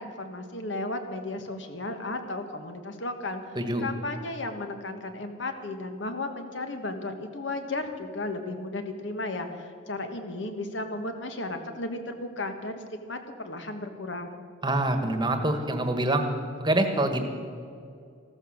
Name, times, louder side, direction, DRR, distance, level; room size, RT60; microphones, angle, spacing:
voice 1, 0.0-3.4 3.8-14.4, left 2 dB, 65° left, 7 dB, 1.5 m, -34 dB
voice 2, 3.6-3.9 14.6-16.2 16.6-17.3, right 1 dB, 20° right, 6 dB, 1.4 m, -25 dB
15.0 x 13.5 x 6.5 m, 2.3 s
head